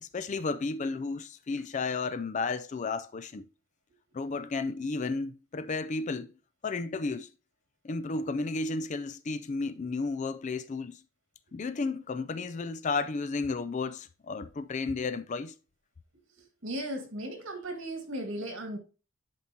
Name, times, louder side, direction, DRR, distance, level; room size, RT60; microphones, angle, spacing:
voice 1, 0.0-3.5 4.1-6.3 6.6-7.3 7.8-11.0 11.5-15.6, left 3 dB, 35° left, 0.4 m, -33 dB
voice 2, 16.4-18.8, right 1 dB, 70° right, 1.8 m, -36 dB
10.5 x 4.4 x 2.7 m
head